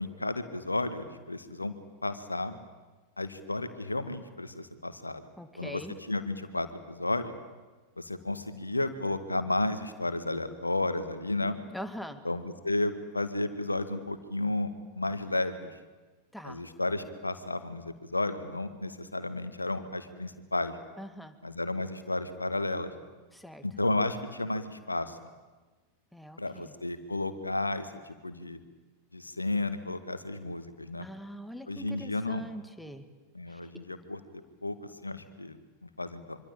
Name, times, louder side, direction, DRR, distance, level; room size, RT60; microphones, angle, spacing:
voice 1, 0.0-1.7 2.0-2.5 3.2-5.2 5.6-5.8 6.1-7.3 8.0-11.6 12.3-15.7 16.4-20.7 21.4-22.9 23.6-25.2 26.4-28.6 29.1-31.1 31.7-32.4 33.4-34.2 34.6-34.8 35.0-36.4, left 2 dB, 80° left, 11 dB, 1.9 m, -32 dB
voice 2, 5.4-6.0 11.7-12.2 16.3-16.6 21.0-21.4 23.3-23.6 26.1-26.7 31.0-33.1 33.5-33.7, equal, ahead, 9 dB, 2.0 m, -43 dB
25.5 x 25.0 x 8.9 m, 1.3 s
figure-of-eight pair, 90°, 0 cm